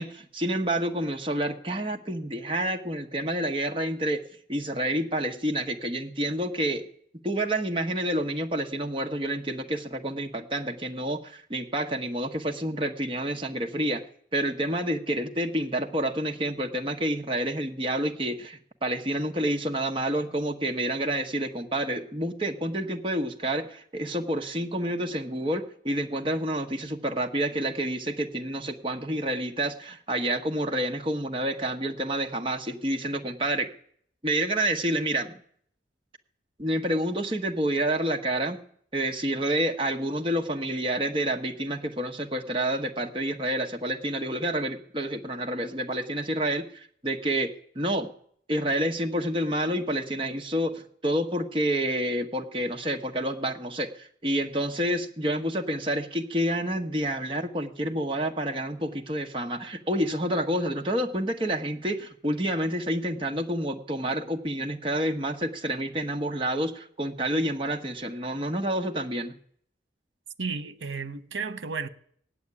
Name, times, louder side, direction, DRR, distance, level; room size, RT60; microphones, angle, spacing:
voice 1, 0.0-6.9 7.2-14.0 14.3-33.7 34.2-35.4 36.6-38.6 38.9-48.1 48.5-69.3, right 1 dB, 30° right, 1.3 m, -29 dB
voice 2, 70.4-71.9, right 5 dB, 90° right, 1.0 m, -33 dB
17.5 x 8.0 x 9.8 m
head